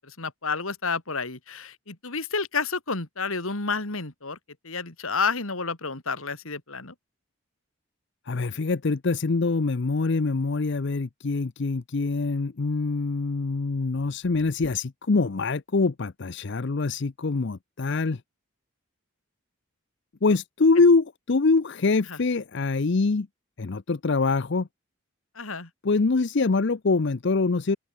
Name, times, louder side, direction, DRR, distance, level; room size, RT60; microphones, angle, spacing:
voice 1, 0.0-4.4 4.6-6.9 22.1-22.2 25.3-25.7, left 4 dB, 70° left, 2.9 m, -30 dB
voice 2, 8.3-18.2 20.2-23.3 23.6-24.7 25.8-27.8, left 3 dB, 55° left, 0.6 m, -24 dB
open air
head